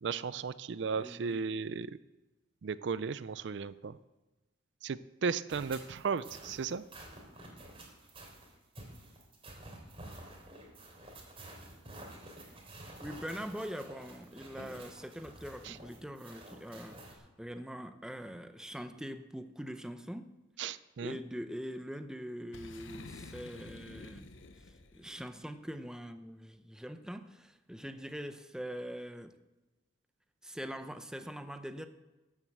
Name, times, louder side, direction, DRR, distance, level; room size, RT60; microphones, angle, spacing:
voice 1, 0.0-1.9 2.6-4.0 4.8-6.8 15.7-15.8 20.6-21.2, right 5 dB, 60° right, 16 dB, 0.4 m, -35 dB
voice 2, 0.9-1.4 13.0-20.3 21.0-24.3 24.9-29.3 30.4-31.9, equal, 5° right, 9 dB, 0.6 m, -43 dB
sound 1, 5.5-17.2, right 1 dB, 30° right, 3.1 m, -50 dB
Boom, 22.5-25.3, left 3 dB, 80° left, 0.9 m, -50 dB
12.5 x 7.4 x 8.0 m, 1.1 s
head